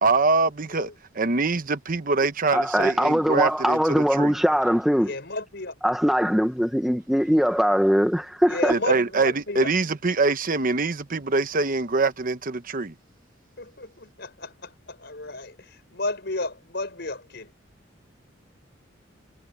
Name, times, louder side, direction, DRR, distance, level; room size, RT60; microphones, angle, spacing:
voice 1, 0.0-0.9 1.1-4.3 8.7-12.9, right 3 dB, 45° right, 0.9 m, -24 dB
voice 2, 2.5-5.1 5.8-8.7, equal, ahead, 1.1 m, -21 dB
voice 3, 5.0-5.7 8.5-9.7 13.6-17.5, left 2 dB, 60° left, 5.4 m, -33 dB
head